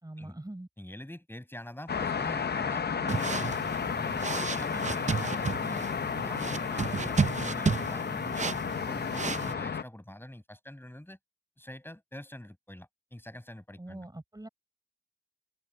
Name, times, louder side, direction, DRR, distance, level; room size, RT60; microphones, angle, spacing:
voice 1, 0.0-0.7 13.8-14.5, right 1 dB, 25° right, 4.7 m, -43 dB
voice 2, 0.8-3.7 3.9-5.9 6.2-11.2 11.6-14.1, left 1 dB, 15° left, 7.3 m, -44 dB
sound 1, 1.9-9.8, left 6 dB, 80° left, 0.8 m, -32 dB
sound 2, 3.1-9.5, right 5 dB, 45° right, 0.6 m, -33 dB
cardioid pair, 55°, 17 cm